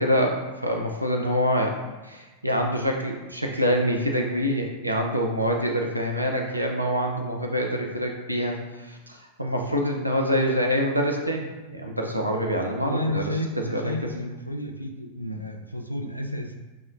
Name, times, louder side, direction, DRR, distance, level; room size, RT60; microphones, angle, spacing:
voice 1, 0.0-1.8 2.0-14.1 15.3-15.4, equal, 85° right, 2 dB, 0.4 m, -26 dB
voice 2, 12.8-16.6, left 1 dB, 90° left, 3 dB, 0.3 m, -31 dB
5.1 x 2.1 x 2.5 m, 1.2 s
figure-of-eight pair, 90°, 0 cm